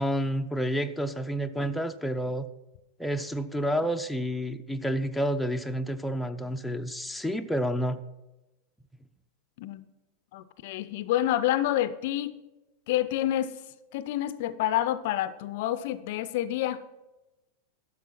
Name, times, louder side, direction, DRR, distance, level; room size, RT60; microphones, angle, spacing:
voice 1, 0.0-2.5 3.0-8.0, equal, ahead, 6 dB, 0.5 m, -29 dB
voice 2, 10.3-12.4 12.9-13.5 13.9-16.8, left 13 dB, 50° left, 16 dB, 0.5 m, -28 dB
12.0 x 6.8 x 5.9 m, 1.0 s
figure-of-eight pair, 90°, 0 cm